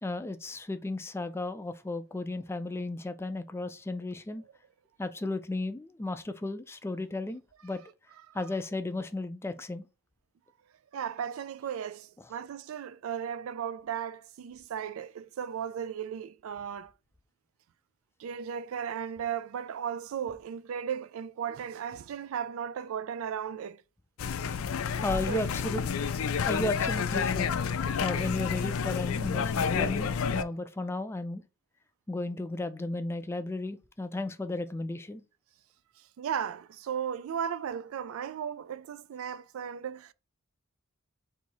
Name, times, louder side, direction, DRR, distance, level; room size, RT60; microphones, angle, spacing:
voice 1, 0.0-4.4 5.0-7.8 8.3-9.8 25.0-25.8 26.5-27.5 28.0-31.4 32.1-35.2, left 2 dB, 10° left, 0.3 m, -34 dB
voice 2, 10.9-16.9 18.2-23.8 25.3-25.5 36.2-40.1, right 8 dB, 80° right, 0.3 m, -36 dB
sound 1, 24.2-30.4, left 6 dB, 80° left, 0.4 m, -29 dB
4.1 x 2.7 x 4.6 m
head